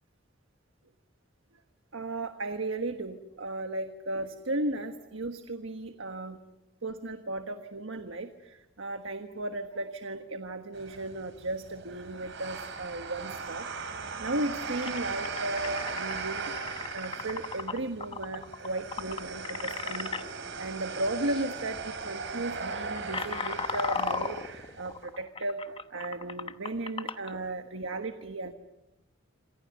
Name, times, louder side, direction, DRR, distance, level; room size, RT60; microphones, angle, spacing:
voice 1, 1.9-6.4 6.8-13.7 14.2-16.5 16.9-20.1 20.6-28.5, right 2 dB, 90° right, 7 dB, 1.4 m, -35 dB
sound 1, 10.7-25.0, right 4 dB, 65° right, 4.0 m, -38 dB
sound 2, 14.8-20.2 21.2-21.4 21.7-22.0 22.6-27.3, left 4 dB, 30° left, 1.0 m, -36 dB
27.5 x 26.5 x 6.6 m, 0.98 s
head